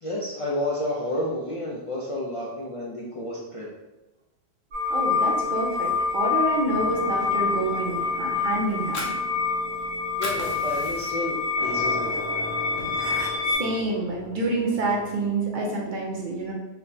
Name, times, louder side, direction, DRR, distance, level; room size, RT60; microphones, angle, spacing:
voice 1, 0.0-3.7 10.2-12.5, left 1 dB, 45° left, -5 dB, 0.4 m, -31 dB
sound 1, 4.7-13.6, left 4 dB, 80° right, 1.4 m, -26 dB
voice 2, 4.9-9.1 13.5-16.5, right 2 dB, 55° right, -2 dB, 0.7 m, -28 dB
sound 2, 6.7-15.3, left 1 dB, 25° left, 0.8 m, -40 dB
Fire, 8.7-9.8 10.1-11.4 11.9-12.0 12.4-13.4, left 2 dB, 85° left, 1.0 m, -36 dB
4.2 x 2.1 x 2.6 m, 1.0 s
omnidirectional pair, 1.1 m